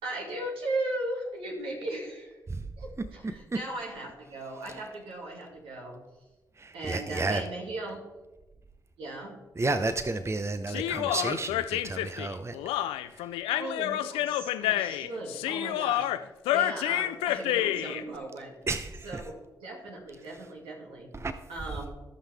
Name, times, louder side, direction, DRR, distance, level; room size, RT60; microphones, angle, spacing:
voice 1, 0.0-2.4 2.8-6.0 6.7-8.0 9.0-9.4 13.5-16.1 16.5-18.6 19.0-21.1 21.5-21.9, right 2 dB, 80° right, -1 dB, 2.2 m, -37 dB
voice 2, 6.6-7.4 9.6-12.6 13.1-13.3 18.7-19.2 21.1-21.3, right 3 dB, 30° right, 10 dB, 0.7 m, -31 dB
Human voice, 10.7-18.0, left 13 dB, 85° left, 0.4 m, -29 dB
16.5 x 5.7 x 3.5 m, 1.1 s
hypercardioid pair, 40°, 9 cm